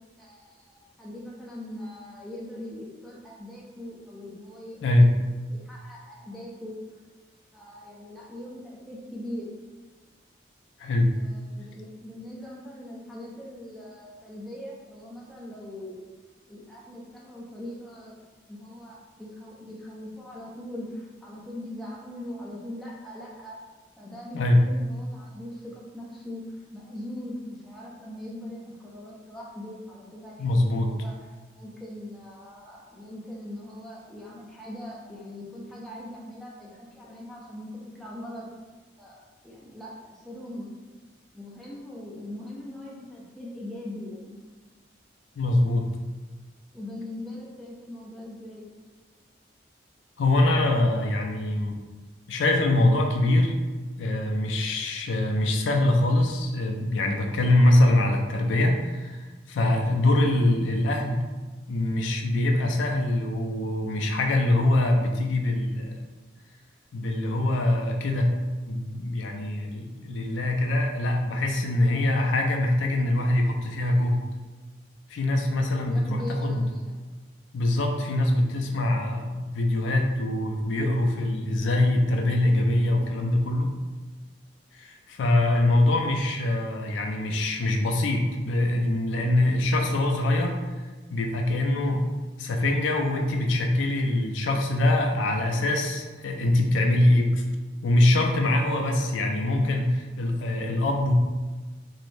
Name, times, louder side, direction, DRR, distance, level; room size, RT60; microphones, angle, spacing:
voice 1, 0.2-5.0 5.5-6.8 7.5-9.5 11.1-15.9 16.5-18.2 18.5-23.6 24.0-38.5 39.0-40.7 41.3-44.4 46.7-48.7 75.9-77.0, left 1 dB, ahead, -5 dB, 0.4 m, -41 dB
voice 2, 10.8-11.1 24.3-24.6 30.4-30.9 45.4-45.9 50.2-51.8 52.3-53.5 54.0-61.2 61.7-66.0 66.9-68.3 68.7-74.2 75.1-76.7 77.5-83.7 84.7-90.6 91.1-92.0 92.4-97.4 97.8-101.1, left 1 dB, 85° left, 3 dB, 0.4 m, -23 dB
2.5 x 2.0 x 3.1 m, 1.3 s
head